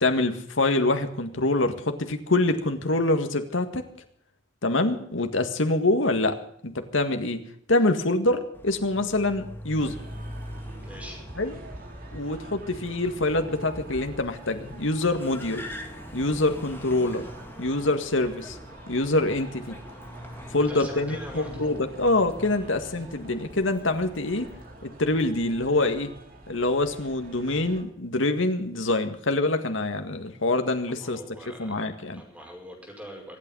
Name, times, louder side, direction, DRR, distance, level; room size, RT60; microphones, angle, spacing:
voice 1, 0.0-3.8 4.6-6.4 6.6-7.4 7.7-10.0 11.4-11.6 12.1-15.6 16.1-17.2 17.6-18.6 18.9-19.8 20.5-24.5 24.8-26.1 26.5-31.2 31.6-32.2, left 2 dB, 80° left, 6 dB, 1.8 m, -25 dB
Car, 8.5-25.3, equal, 10° left, 2.2 m, -43 dB
sound 1, 9.8-27.8, right 1 dB, 50° right, 3.6 m, -46 dB
voice 2, 10.8-11.2 20.7-21.7 22.6-22.7 30.9-31.8 32.1-33.4, equal, 5° right, 1 dB, 5.6 m, -43 dB
25.0 x 9.0 x 5.4 m, 0.68 s
head